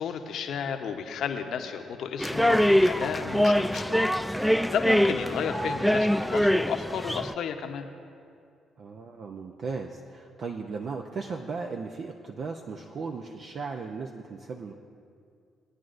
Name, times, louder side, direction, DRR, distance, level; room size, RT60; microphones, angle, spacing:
voice 1, 0.0-4.0 4.3-7.9, left 7 dB, 70° left, 5 dB, 0.8 m, -33 dB
sound 1, 2.2-7.3, equal, ahead, 0.4 m, -24 dB
voice 2, 8.8-14.8, right 4 dB, 60° right, 3 dB, 0.6 m, -36 dB
20.0 x 9.6 x 2.6 m, 2.3 s
hypercardioid pair, 55°, 0 cm